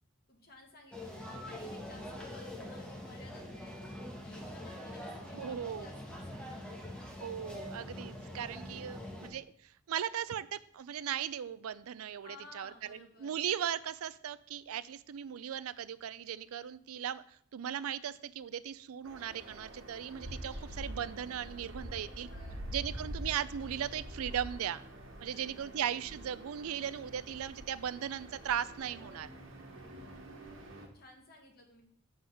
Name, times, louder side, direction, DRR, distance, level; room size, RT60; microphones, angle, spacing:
voice 1, 0.3-7.0 8.8-9.3 12.2-13.4 21.8-23.2 25.3-25.8 29.7-31.8, left 2 dB, 45° left, 1 dB, 1.6 m, -57 dB
sound 1, 0.9-9.3, left 1 dB, 5° left, 1.1 m, -44 dB
voice 2, 5.3-5.9 7.2-9.4 9.9-17.2 17.5-22.3 22.7-24.9 25.2-29.3, right 9 dB, 85° right, 16 dB, 0.4 m, -38 dB
sound 2, 19.0-30.9, equal, 60° right, 1.5 m, -46 dB
7.6 x 3.9 x 6.3 m, 0.64 s
head